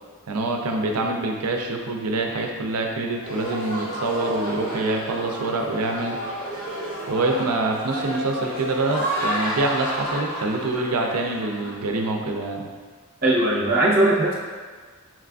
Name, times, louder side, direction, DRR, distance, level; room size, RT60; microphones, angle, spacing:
voice 1, 0.3-6.2 7.1-12.6, right 2 dB, 85° right, 2 dB, 0.5 m, -25 dB
sound 1, 3.2-11.9, equal, 60° left, 1.1 m, -31 dB
voice 2, 13.2-14.3, right 1 dB, 40° right, -5 dB, 0.8 m, -19 dB
5.8 x 2.4 x 2.3 m, 1.5 s
head